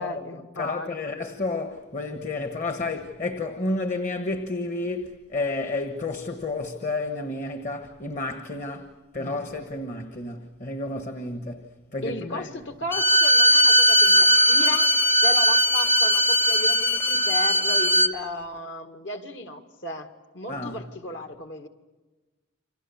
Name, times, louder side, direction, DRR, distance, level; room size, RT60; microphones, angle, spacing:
voice 1, 0.0-0.9 9.2-9.4 12.0-14.9 15.2-21.7, left 2 dB, 60° left, 2.0 m, -35 dB
voice 2, 0.6-12.6 20.5-20.8, left 2 dB, 40° left, 1.3 m, -31 dB
Bowed string instrument, 12.9-18.1, equal, 10° left, 0.8 m, -19 dB
29.0 x 26.0 x 7.1 m
head